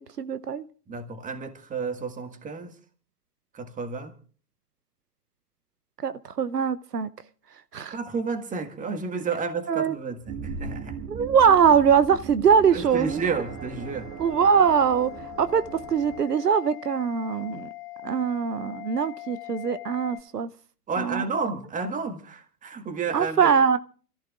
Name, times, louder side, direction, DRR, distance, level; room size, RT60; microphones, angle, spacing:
voice 1, 0.2-0.7 6.0-7.1 7.7-7.9 9.7-10.0 11.1-13.2 14.2-15.1 15.4-15.6 15.9-17.7 18.0-20.5 21.0-21.2 23.1-23.8, right 7 dB, 85° right, 0.8 m, -22 dB
voice 2, 0.9-2.8 3.5-4.1 7.9-11.0 12.7-14.1 20.9-23.5, right 4 dB, 15° right, 1.8 m, -31 dB
sound 1, 10.2-16.2, right 6 dB, 35° right, 1.6 m, -38 dB
sound 2, 13.1-20.2, left 19 dB, 20° left, 3.7 m, -42 dB
28.5 x 14.5 x 2.4 m
figure-of-eight pair, 100°, 47 cm